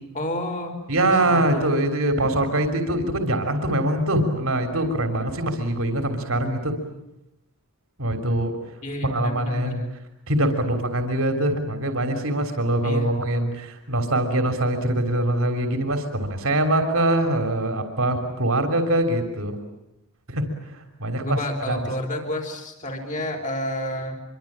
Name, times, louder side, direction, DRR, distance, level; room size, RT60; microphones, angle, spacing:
voice 1, 0.1-0.8 1.0-1.8 8.8-9.8 12.8-13.2 21.2-24.2, left 1 dB, 35° left, 3 dB, 4.7 m, -30 dB
voice 2, 0.9-6.7 8.0-8.5 9.0-9.8 10.3-19.6 20.3-20.4 21.0-21.4 21.7-21.8, right 1 dB, 65° right, 6 dB, 3.3 m, -23 dB
25.5 x 24.5 x 8.8 m, 0.87 s
head